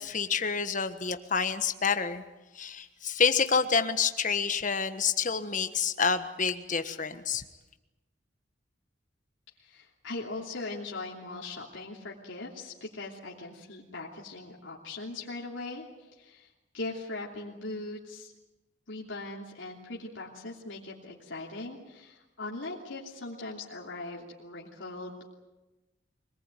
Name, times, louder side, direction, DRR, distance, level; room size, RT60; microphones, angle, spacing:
voice 1, 0.0-2.2 2.5-7.4, left 6 dB, 40° left, 9 dB, 1.4 m, -28 dB
voice 2, 9.6-18.3 18.9-25.3, left 2 dB, 85° left, -3 dB, 3.1 m, -40 dB
25.0 x 19.5 x 9.2 m, 1.1 s
head